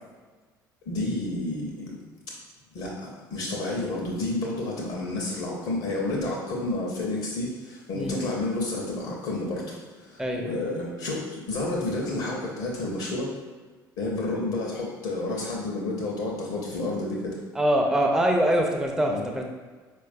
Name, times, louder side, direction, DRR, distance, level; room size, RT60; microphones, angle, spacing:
voice 1, 0.9-1.9 2.7-13.4 14.0-17.4 19.1-19.3, left 2 dB, 60° left, -2 dB, 0.7 m, -30 dB
voice 2, 17.5-19.5, right 1 dB, 5° right, 1 dB, 0.5 m, -23 dB
4.3 x 2.3 x 2.5 m, 1.4 s
figure-of-eight pair, 60°, 11 cm